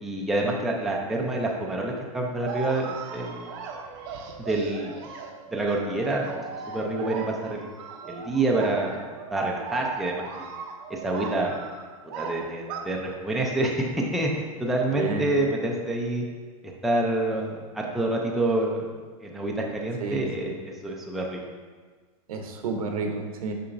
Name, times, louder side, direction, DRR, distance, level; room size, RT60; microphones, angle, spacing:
voice 1, 0.0-3.5 4.4-5.0 5.5-7.7 8.1-10.2 10.9-11.6 12.1-16.2 16.8-18.9 19.2-21.4, right 2 dB, ahead, -2 dB, 0.5 m, -27 dB
sound 1, 2.5-12.8, right 5 dB, 45° right, 0.7 m, -38 dB
voice 2, 14.9-15.3 20.0-20.5 22.3-23.5, right 4 dB, 80° right, 4 dB, 1.0 m, -30 dB
6.8 x 5.7 x 2.6 m, 1.5 s
hypercardioid pair, 145°, 19 cm